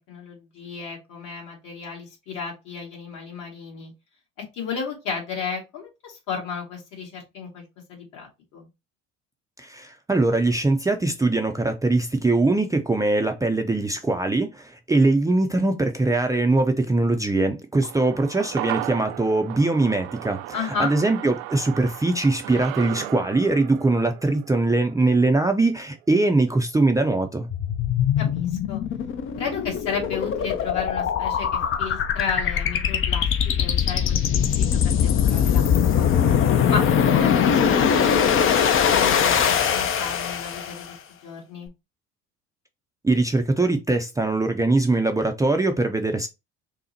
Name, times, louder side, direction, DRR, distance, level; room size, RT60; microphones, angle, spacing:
voice 1, 0.1-3.9 4.4-7.6 7.9-8.7 20.5-20.9 28.2-28.8 29.4-35.7 36.0-36.1 36.7-36.9 37.1-40.9 41.2-41.7, left 5 dB, 60° left, 2.0 m, -33 dB
voice 2, 9.6-27.5 43.0-46.3, right 2 dB, 10° right, 0.5 m, -22 dB
sound 1, 17.8-26.3 26.6-26.7, right 15 dB, 65° right, 0.5 m, -36 dB
sound 2, 27.5-40.9, left 8 dB, 35° left, 0.6 m, -21 dB
5.7 x 2.1 x 2.7 m
hypercardioid pair, 60°, 35 cm